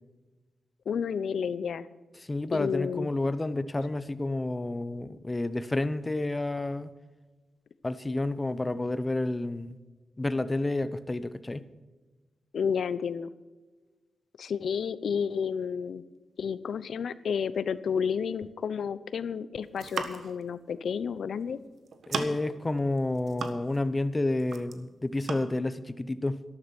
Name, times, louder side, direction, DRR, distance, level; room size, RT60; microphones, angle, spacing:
voice 1, 0.9-1.9 2.5-3.1 12.5-13.3 14.4-16.0 16.4-21.6, left 6 dB, 75° left, 16 dB, 0.7 m, -31 dB
voice 2, 2.2-6.9 7.8-9.8 10.2-11.7 22.1-26.4, left 2 dB, 20° left, 14 dB, 0.7 m, -30 dB
sound 1, 19.6-20.4 21.4-21.6 21.9-22.5 23.0-23.9 24.2-24.8 25.2-25.4, right 5 dB, 75° right, 1.4 m, -36 dB
13.0 x 12.5 x 6.1 m, 1.2 s
wide cardioid pair, 115°, 0 cm